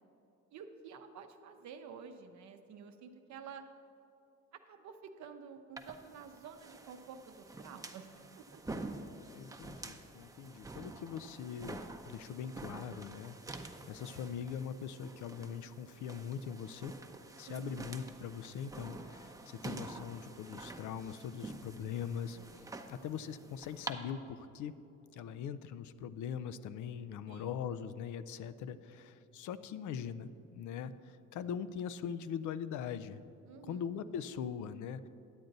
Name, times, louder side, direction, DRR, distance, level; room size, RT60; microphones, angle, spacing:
voice 1, 0.5-3.6 4.5-8.6 17.5-17.9 27.3-27.8 33.5-33.9, right 6 dB, 70° right, 6 dB, 0.7 m, -50 dB
sound 1, 5.8-23.9, right 2 dB, 10° right, 0.6 m, -48 dB
voice 2, 8.7-9.1 9.3-16.9 17.4-22.4 22.9-24.7 25.1-30.9 31.3-33.2 33.7-35.1, left 8 dB, 75° left, 14 dB, 0.5 m, -41 dB
10.5 x 7.7 x 4.0 m, 2.7 s
cardioid pair, 90°, 30 cm